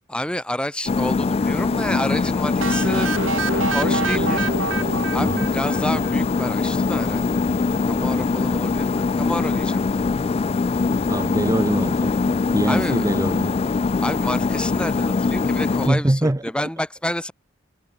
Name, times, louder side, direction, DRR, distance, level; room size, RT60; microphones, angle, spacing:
voice 1, 0.1-3.2 3.5-4.5 5.1-7.4 7.9-10.0 12.7-13.1 14.0-17.3, left 1 dB, 5° left, 2.3 m, -29 dB
sound 1, 0.9-15.9, left 4 dB, 30° left, 0.3 m, -22 dB
sound 2, 2.6-6.4, right 4 dB, 80° right, 4.1 m, -27 dB
voice 2, 11.1-13.5 15.9-16.7, right 1 dB, 15° right, 0.7 m, -23 dB
head